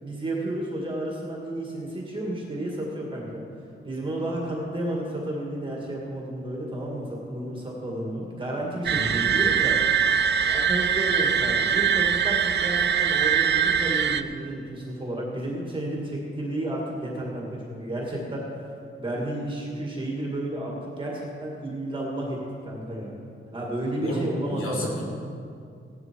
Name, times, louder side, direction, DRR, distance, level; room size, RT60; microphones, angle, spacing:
voice 1, 0.0-3.4 3.8-9.8 10.4-18.5 19.0-23.2 23.5-24.9, right 1 dB, 25° right, -3 dB, 2.0 m, -32 dB
voice 2, 8.9-9.4 24.0-25.0, left 1 dB, 90° left, -2 dB, 2.7 m, -32 dB
sound 1, 8.9-14.2, right 7 dB, 55° right, 0.5 m, -22 dB
16.0 x 11.0 x 4.5 m, 2.4 s
wide cardioid pair, 175°, 21 cm